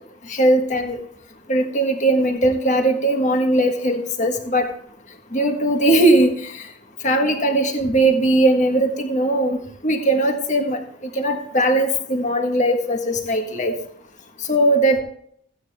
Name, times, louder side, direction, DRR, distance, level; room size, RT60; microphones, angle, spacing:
voice 1, 0.3-1.0 1.5-4.7 5.3-6.3 7.0-9.6 9.8-10.8 11.1-13.7 14.5-15.0, right 1 dB, 35° left, 4 dB, 1.5 m, -19 dB
15.0 x 9.3 x 3.5 m, 0.64 s
head